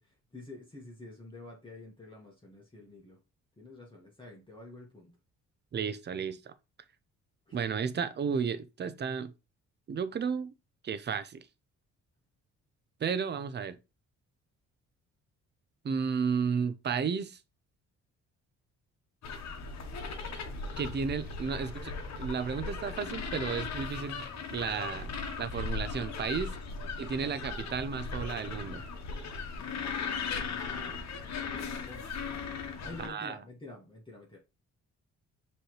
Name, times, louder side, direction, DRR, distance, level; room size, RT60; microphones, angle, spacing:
voice 1, 0.0-3.2 3.6-5.2 7.5-7.6 26.8-26.9 30.2-31.1 31.4-32.1 32.8-34.4, left 2 dB, 15° left, 1.4 m, -49 dB
voice 2, 5.7-6.5 7.5-9.3 9.9-10.5 10.8-11.5 13.0-13.8 15.8-17.4 20.8-24.2 24.5-26.5 27.0-28.8 33.0-33.3, right 6 dB, 35° right, 0.6 m, -33 dB
sound 1, 19.2-33.1, left 4 dB, 60° left, 1.0 m, -38 dB
5.4 x 3.2 x 3.1 m
cardioid pair, 90°, 30 cm